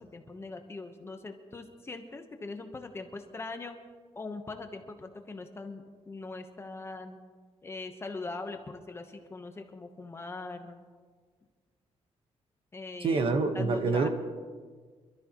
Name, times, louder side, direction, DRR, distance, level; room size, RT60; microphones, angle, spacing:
voice 1, 0.0-3.8 4.1-7.2 7.6-10.8 12.7-13.2 13.5-14.1, left 3 dB, 20° left, 5 dB, 1.0 m, -41 dB
voice 2, 13.0-14.1, right 4 dB, 50° right, 6 dB, 1.2 m, -26 dB
26.0 x 13.0 x 3.1 m, 1.5 s
wide cardioid pair, 165°, 12 cm